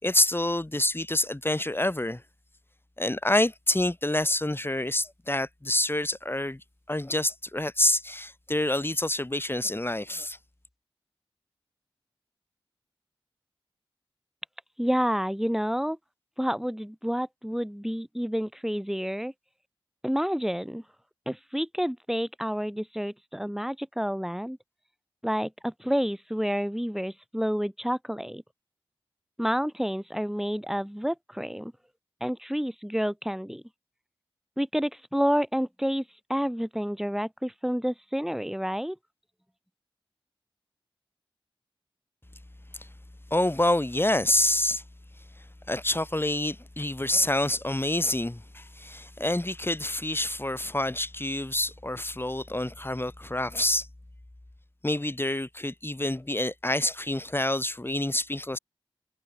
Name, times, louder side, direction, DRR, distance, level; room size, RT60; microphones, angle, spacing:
voice 1, 0.0-2.2 3.0-6.6 6.9-10.4 42.8-42.9 43.3-44.8 45.7-53.9 54.8-58.6, left 1 dB, 25° left, 6.9 m, -27 dB
voice 2, 14.8-16.0 16.4-19.3 20.0-20.8 21.3-24.6 25.2-28.4 29.4-31.7 32.2-33.6 34.6-36.0 36.3-39.0, equal, 5° right, 7.4 m, -29 dB
cardioid pair, 50°, 10 cm